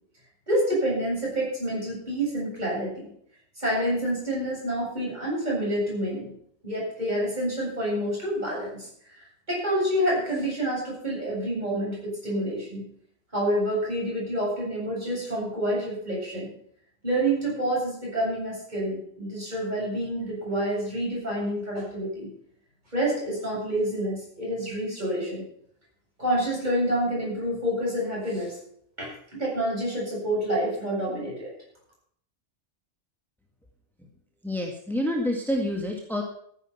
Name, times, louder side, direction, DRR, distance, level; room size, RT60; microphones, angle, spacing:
voice 1, 0.5-3.1 3.6-6.3 6.6-8.9 9.5-12.8 13.3-16.5 17.0-22.3 22.9-25.4 26.2-28.6 29.0-31.5, right 1 dB, 40° right, -5 dB, 8.1 m, -28 dB
voice 2, 34.4-36.2, left 1 dB, ahead, 1 dB, 1.9 m, -28 dB
14.5 x 9.9 x 5.8 m, 0.67 s
omnidirectional pair, 1.1 m